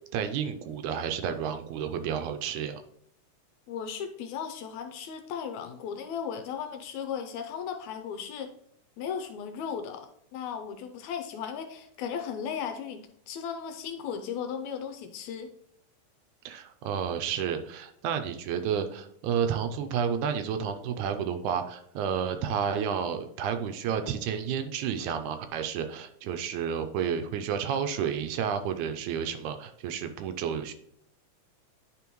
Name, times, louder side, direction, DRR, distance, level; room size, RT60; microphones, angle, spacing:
voice 1, 0.1-2.8 16.5-30.7, right 7 dB, 80° right, 7 dB, 1.9 m, -31 dB
voice 2, 3.7-8.5 9.0-15.5, left 7 dB, 75° left, 7 dB, 1.8 m, -36 dB
10.5 x 4.2 x 3.0 m, 0.70 s
omnidirectional pair, 3.6 m